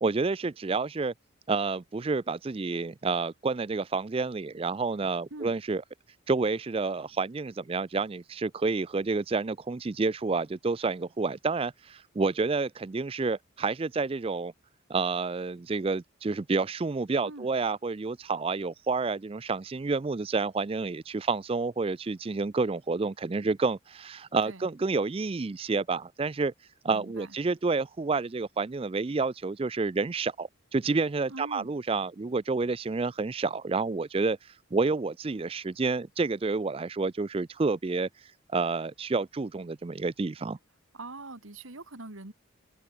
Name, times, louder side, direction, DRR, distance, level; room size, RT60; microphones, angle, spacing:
voice 1, 0.0-1.1 1.5-5.8 6.3-14.5 14.9-40.6, right 4 dB, 25° right, 0.4 m, -29 dB
voice 2, 26.8-27.3 31.3-31.7 40.9-42.3, right 2 dB, 70° right, 2.2 m, -43 dB
head